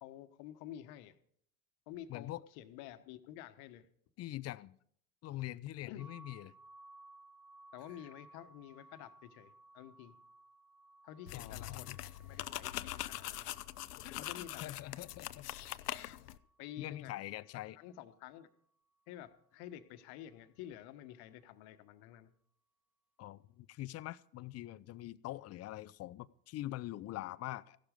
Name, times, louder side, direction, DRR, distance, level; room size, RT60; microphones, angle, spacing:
voice 1, 0.0-1.1 1.9-3.9 5.9-6.1 7.7-10.2 11.0-13.5 14.1-14.6 16.6-17.1 17.8-18.5 19.1-22.3, left 12 dB, 55° left, 10 dB, 1.3 m, -50 dB
voice 2, 2.1-2.4 4.2-4.8 5.2-6.5 11.3-12.0 14.0-15.5 16.8-17.8 23.2-27.8, left 15 dB, 35° left, 17 dB, 0.6 m, -44 dB
sound 1, 6.0-17.7, right 2 dB, 5° right, 2.0 m, -61 dB
sound 2, 11.3-16.4, left 14 dB, 80° left, 0.7 m, -43 dB
15.0 x 11.5 x 5.2 m, 0.66 s
hypercardioid pair, 80°, 45 cm